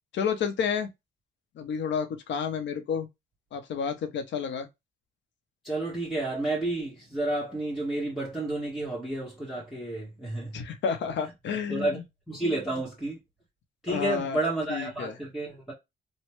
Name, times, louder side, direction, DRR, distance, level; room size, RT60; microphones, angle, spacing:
voice 1, 0.1-0.9 1.6-3.1 3.5-4.7 10.5-12.0 13.9-15.1, left 6 dB, 65° left, 0.8 m, -30 dB
voice 2, 5.6-10.6 11.7-12.0 12.3-13.2 13.8-15.7, right 2 dB, ahead, 1.3 m, -31 dB
3.2 x 2.2 x 3.1 m
cardioid pair, 90°, 20 cm